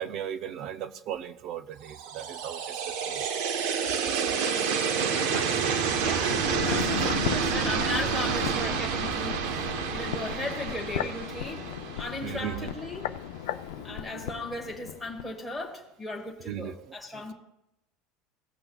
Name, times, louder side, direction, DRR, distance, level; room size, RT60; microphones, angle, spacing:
voice 1, 0.0-3.2 5.5-5.8 12.2-12.7 13.9-14.2 16.4-16.7 17.1-17.3, right 9 dB, 35° right, 12 dB, 0.5 m, -37 dB
sound 1, 1.9-12.9, right 6 dB, 70° right, 0.9 m, -29 dB
voice 2, 5.1-5.5 6.0-11.7 12.0-13.1 13.8-17.3, left 2 dB, ahead, 3 dB, 1.2 m, -37 dB
sound 2, 6.2-15.3 15.6-15.7, left 11 dB, 85° left, 0.5 m, -36 dB
17.0 x 7.8 x 2.3 m, 0.86 s
cardioid pair, 175°, 0 cm